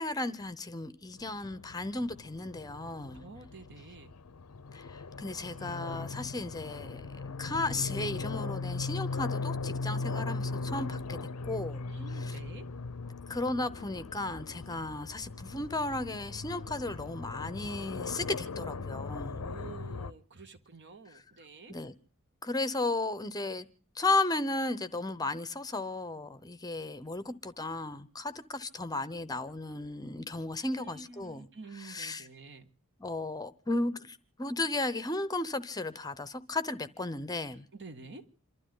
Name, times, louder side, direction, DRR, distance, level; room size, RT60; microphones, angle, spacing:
voice 1, 0.0-3.2 4.7-7.1 7.4-11.2 11.5-11.8 12.2-12.4 13.3-19.5 21.7-21.9 22.4-23.7 24.0-31.4 31.8-32.2 33.0-37.7, left 2 dB, 15° left, 0.8 m, -34 dB
sound 1, 1.2-20.1, left 3 dB, 85° left, 0.7 m, -39 dB
voice 2, 3.1-4.1 11.9-12.7 19.3-21.8 30.6-32.7 37.7-38.3, right 3 dB, 55° right, 1.6 m, -49 dB
28.0 x 13.0 x 3.8 m
head